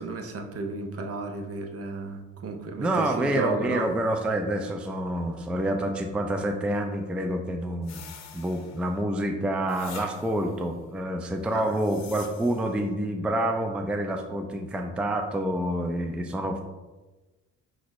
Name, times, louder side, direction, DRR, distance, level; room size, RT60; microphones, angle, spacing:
voice 1, 0.0-3.9 11.5-11.8, right 4 dB, 50° right, 4 dB, 0.7 m, -33 dB
voice 2, 2.8-8.1 8.3-16.6, right 1 dB, 5° right, 4 dB, 0.3 m, -28 dB
sound 1, 7.8-9.0 9.7-10.6 11.5-12.8, left 8 dB, 60° left, 0.6 m, -47 dB
5.9 x 2.5 x 3.0 m, 1.2 s
cardioid pair, 90°, 30 cm